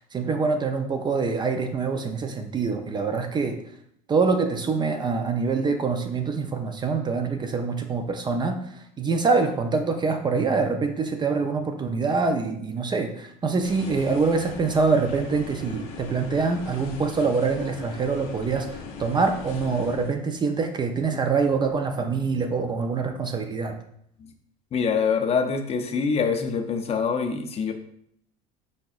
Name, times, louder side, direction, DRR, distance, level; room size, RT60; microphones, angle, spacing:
voice 1, 0.1-3.6 4.1-8.6 9.0-23.8, right 4 dB, 25° right, 6 dB, 0.4 m, -25 dB
sound 1, 13.6-20.1, left 5 dB, 75° left, 0.7 m, -40 dB
voice 2, 24.7-27.7, left 5 dB, 35° left, 6 dB, 0.5 m, -25 dB
4.6 x 4.3 x 2.4 m, 0.70 s
supercardioid pair, 110°, 18 cm